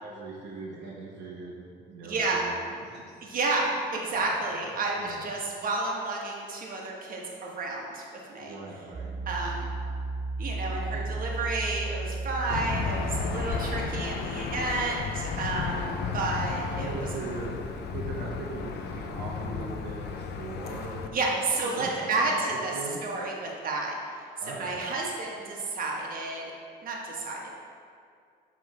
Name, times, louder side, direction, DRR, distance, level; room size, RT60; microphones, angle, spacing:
voice 1, 0.0-3.2 4.1-4.2 4.5-4.6 5.0-5.3 8.4-9.1 10.9-11.1 12.4-12.8 16.8-17.6 17.9-21.0 21.3-22.4 22.7-23.0 24.4-24.8, right 3 dB, 75° right, -4 dB, 1.1 m, -40 dB
voice 2, 2.0-2.4 3.2-8.0 8.3-8.5 9.3-9.7 10.4-16.9 21.1-22.7 23.0-23.9 24.4-26.4 26.8-27.5, right 3 dB, 50° right, -2 dB, 1.4 m, -31 dB
Piano, 8.9-14.1, right 2 dB, 35° right, 1.5 m, -34 dB
Aircraft / Engine, 12.5-21.1, left 5 dB, 65° left, 0.6 m, -33 dB
8.3 x 3.6 x 4.7 m, 2.2 s
cardioid pair, 95°, 18 cm